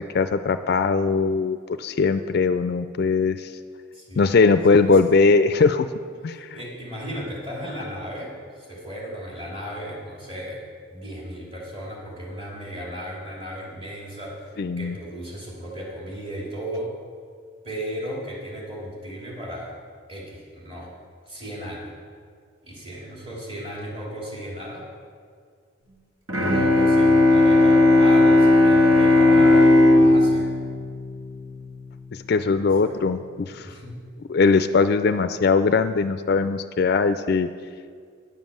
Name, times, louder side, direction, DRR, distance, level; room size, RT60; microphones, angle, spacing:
voice 1, 0.1-3.5 4.2-5.9 6.2-6.5 14.6-14.9 29.3-29.7 32.3-33.7 34.3-37.5, left 4 dB, 50° left, 11 dB, 0.3 m, -20 dB
voice 2, 3.9-5.0 6.5-10.6 10.9-14.5 14.8-16.9 17.6-19.7 20.1-20.9 21.3-21.9 22.6-24.9 26.5-30.5 32.8-33.0 33.6-33.9, equal, 25° right, -5 dB, 3.1 m, -35 dB
Bowed string instrument, 26.3-31.9, left 2 dB, 90° right, 1.7 m, -16 dB
10.5 x 7.3 x 7.6 m, 2.1 s
head